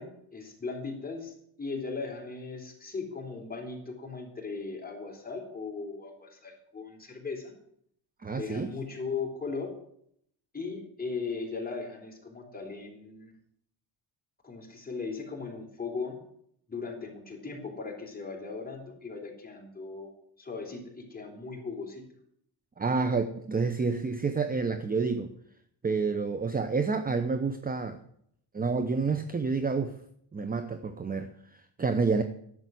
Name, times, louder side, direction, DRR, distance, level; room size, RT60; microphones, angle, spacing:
voice 1, 0.0-7.5 8.4-9.7 10.5-13.3 14.4-16.2 16.7-20.1 20.4-22.0, left 4 dB, 20° left, 1 dB, 4.0 m, -38 dB
voice 2, 8.2-8.7 22.8-25.3 25.8-28.0 28.5-29.9 30.3-32.2, right 4 dB, 20° right, 10 dB, 0.8 m, -29 dB
11.0 x 7.4 x 9.5 m, 0.69 s
cardioid pair, 100°, 47 cm